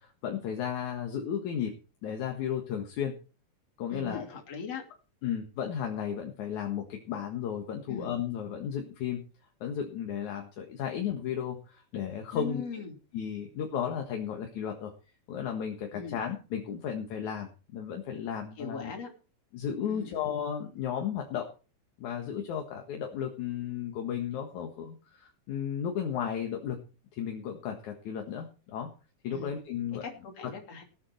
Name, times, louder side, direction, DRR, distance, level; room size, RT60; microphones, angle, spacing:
voice 1, 0.0-1.7 2.0-3.2 3.8-4.2 5.2-9.2 9.6-12.8 13.1-14.9 15.3-18.9 19.5-21.5 22.0-26.8 27.1-28.9 29.2-30.1 30.4-30.5, left 8 dB, 65° left, 3 dB, 2.9 m, -34 dB
voice 2, 3.9-4.8 7.9-8.1 12.3-12.9 15.9-16.2 18.6-19.1 19.9-20.2 29.3-29.5 30.0-30.8, left 5 dB, 50° left, 3 dB, 3.8 m, -39 dB
18.5 x 8.8 x 4.5 m, 0.33 s
omnidirectional pair, 3.8 m